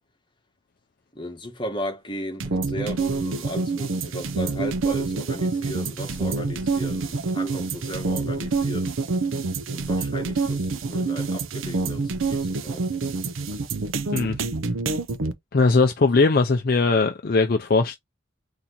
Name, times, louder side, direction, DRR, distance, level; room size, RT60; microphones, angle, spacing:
voice 1, 1.1-8.9 9.7-12.9, equal, 25° left, 1.1 m, -35 dB
sound 1, 2.4-15.3, right 3 dB, 85° right, 0.6 m, -27 dB
voice 2, 15.5-18.0, left 3 dB, 45° left, 0.5 m, -20 dB
4.3 x 2.8 x 3.9 m
head